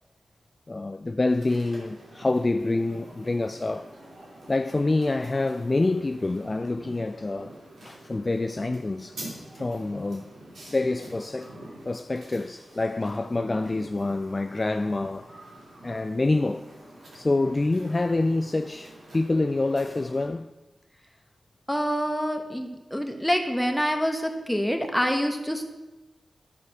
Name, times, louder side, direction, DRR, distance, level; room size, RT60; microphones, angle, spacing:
voice 1, 0.7-3.9 4.5-7.5 7.8-9.2 9.5-10.3 10.7-11.6 11.9-15.3 15.8-16.7 17.1-20.5, left 2 dB, 35° left, 0.3 m, -26 dB
sound 1, 1.2-20.3, right 1 dB, 85° right, 2.8 m, -46 dB
voice 2, 21.7-25.6, equal, 5° left, 1.3 m, -26 dB
12.0 x 4.8 x 5.8 m
cardioid pair, 60°, 0 cm